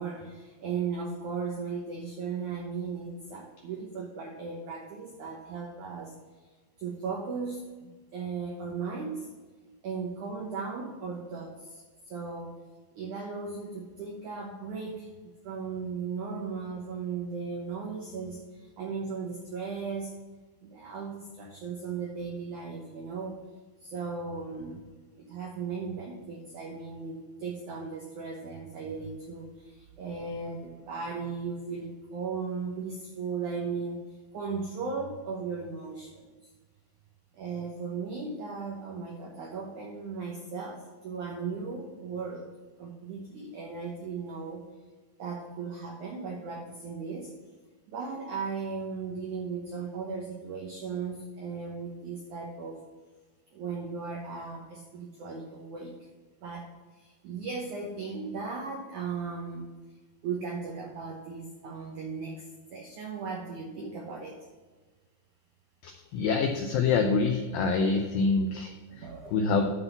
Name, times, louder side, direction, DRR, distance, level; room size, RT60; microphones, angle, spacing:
voice 1, 0.0-6.1 6.8-9.3 9.8-12.6 13.0-15.1 15.4-20.1 20.6-23.4 23.8-24.9 25.2-36.3 37.3-42.5 42.8-44.6 45.2-47.3 47.9-52.8 53.5-55.9 56.4-56.7 57.0-59.7 60.2-62.5 62.7-64.3 68.9-69.4, right 5 dB, 80° right, -1 dB, 1.7 m, -37 dB
voice 2, 65.8-69.7, left 4 dB, 85° left, 4 dB, 2.0 m, -26 dB
11.0 x 4.0 x 6.9 m, 1.3 s
omnidirectional pair, 4.9 m